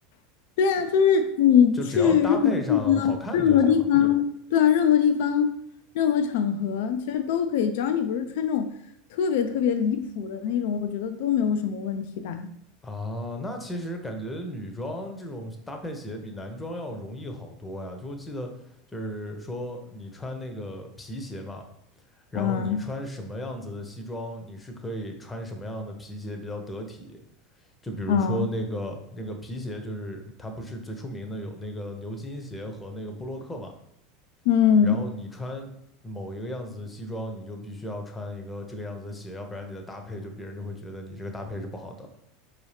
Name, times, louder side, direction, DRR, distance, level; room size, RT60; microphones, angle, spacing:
voice 1, 0.6-4.2 4.5-5.5 5.9-8.7 9.1-12.5 22.3-22.8 28.1-28.5 34.5-35.0, left 8 dB, 65° left, 9 dB, 0.3 m, -22 dB
voice 2, 1.7-3.8 12.8-18.5 18.9-21.6 22.3-27.2 27.8-33.7 34.8-35.7 36.0-42.1, equal, 15° left, 4 dB, 0.8 m, -35 dB
4.6 x 2.8 x 3.2 m, 0.77 s
hypercardioid pair, 80°, 0 cm